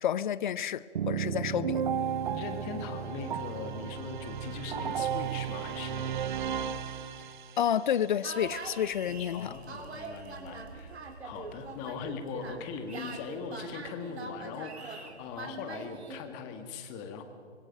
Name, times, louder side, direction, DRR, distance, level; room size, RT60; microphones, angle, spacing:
voice 1, 0.0-1.8 7.6-9.5, left 9 dB, 45° left, 0.7 m, -30 dB
sound 1, 0.9-7.7, right 8 dB, 45° right, 0.8 m, -33 dB
voice 2, 2.3-6.2 9.1-10.9 11.2-17.2, left 6 dB, 20° left, 1.7 m, -40 dB
sound 2, 8.2-16.3, right 4 dB, 65° right, 2.8 m, -43 dB
25.0 x 21.0 x 5.3 m
figure-of-eight pair, 140°, 35 cm